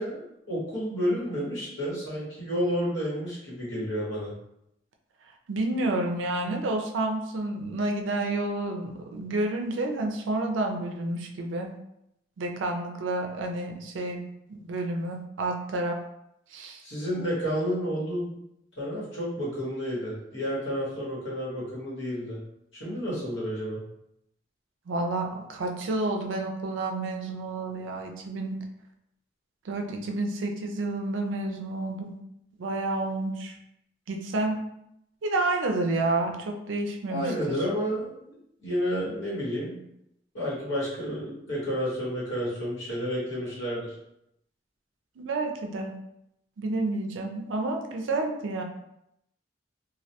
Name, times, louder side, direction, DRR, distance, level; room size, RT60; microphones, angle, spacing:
voice 1, 0.0-4.3 16.8-18.4 18.8-22.4 22.8-23.8 37.1-38.3 38.6-39.8 40.3-43.9, equal, 85° left, -7 dB, 1.1 m, -30 dB
voice 2, 5.5-11.7 12.4-16.0 16.5-16.8 24.9-28.6 29.6-32.2 32.6-33.6 34.1-34.6 35.2-37.6 45.2-45.9 46.6-48.6, right 2 dB, 90° right, 3 dB, 0.4 m, -30 dB
2.2 x 2.1 x 2.7 m, 0.79 s
head